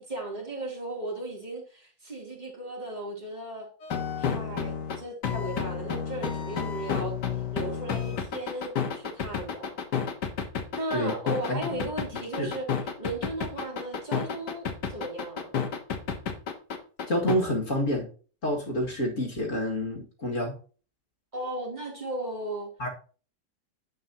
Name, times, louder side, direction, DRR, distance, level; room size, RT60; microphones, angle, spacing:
voice 1, 0.0-3.7 4.2-9.7 10.7-12.6 13.0-15.5 21.3-22.7, right 1 dB, 20° right, 3.0 m, -36 dB
sound 1, 3.8-17.4, left 7 dB, 65° left, 1.9 m, -30 dB
voice 2, 11.5-11.9 12.4-12.5 17.1-18.1 18.4-20.5 22.8-22.9, equal, 45° left, 2.4 m, -28 dB
10.0 x 8.8 x 2.9 m
omnidirectional pair, 2.0 m